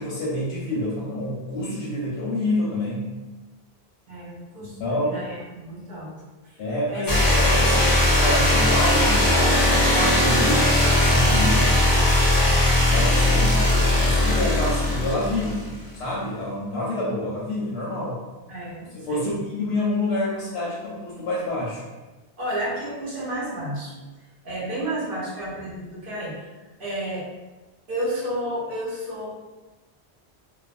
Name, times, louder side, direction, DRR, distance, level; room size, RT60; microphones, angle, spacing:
voice 1, 0.0-3.1 4.6-5.2 6.6-10.7 11.0-11.7 12.8-13.7 14.0-18.2 18.9-21.8, left 1 dB, 90° left, -7 dB, 0.9 m, -28 dB
voice 2, 4.1-6.1 6.5-6.6 6.9-7.1 18.5-19.4 22.4-23.9 24.4-26.4 26.8-27.3 27.9-29.3, right 1 dB, 55° right, -6 dB, 0.9 m, -31 dB
sound 1, 7.1-15.8, left 1 dB, 30° left, 0.4 m, -19 dB
2.5 x 2.0 x 2.4 m, 1.2 s
omnidirectional pair, 1.1 m